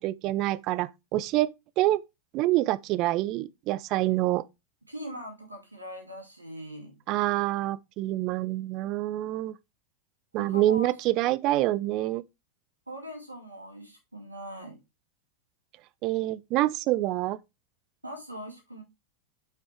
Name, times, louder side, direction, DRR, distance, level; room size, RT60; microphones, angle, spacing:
voice 1, 0.0-1.5 1.8-2.0 2.3-4.4 7.1-9.6 10.3-12.2 16.0-17.4, right 16 dB, 40° right, 0.5 m, -26 dB
voice 2, 4.9-6.9 10.4-10.9 12.9-14.8 18.0-18.8, equal, 85° right, 2.2 m, -41 dB
7.5 x 6.0 x 3.4 m
figure-of-eight pair, 90°, 0 cm